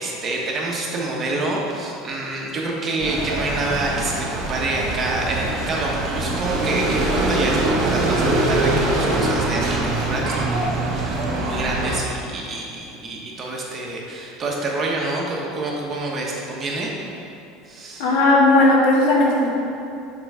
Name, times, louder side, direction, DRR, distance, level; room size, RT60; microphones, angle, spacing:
voice 1, 0.0-16.9 17.7-18.0, right 2 dB, 30° right, -2 dB, 1.1 m, -27 dB
sound 1, 3.0-12.0, right 2 dB, 50° right, 1.5 m, -23 dB
voice 2, 18.0-19.5, left 2 dB, 80° left, -3 dB, 1.5 m, -16 dB
6.0 x 4.5 x 4.9 m, 2.8 s
supercardioid pair, 130°, 0 cm